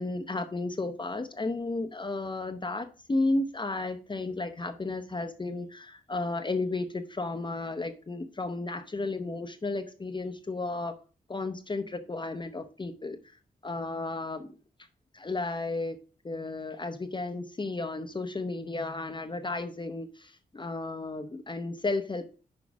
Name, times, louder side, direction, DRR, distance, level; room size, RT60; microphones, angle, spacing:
voice 1, 0.0-10.9 11.3-13.4 13.6-14.5 15.1-16.0 16.2-22.3, left 2 dB, 30° left, 5 dB, 0.9 m, -33 dB
6.2 x 4.8 x 6.0 m, 0.37 s
cardioid pair, 55°, 16 cm